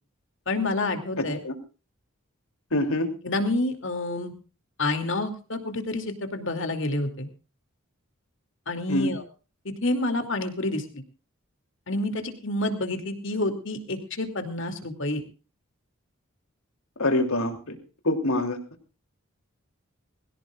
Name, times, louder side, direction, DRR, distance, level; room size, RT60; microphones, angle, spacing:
voice 1, 0.5-1.4 3.2-4.3 4.8-7.3 8.7-9.2 9.6-11.0 11.9-15.2, left 2 dB, 65° left, 6 dB, 2.7 m, -28 dB
voice 2, 1.2-1.5 2.7-3.1 8.9-9.1 17.0-17.8 18.0-18.6, left 1 dB, 85° left, 6 dB, 3.1 m, -25 dB
21.5 x 17.0 x 2.5 m, 0.35 s
head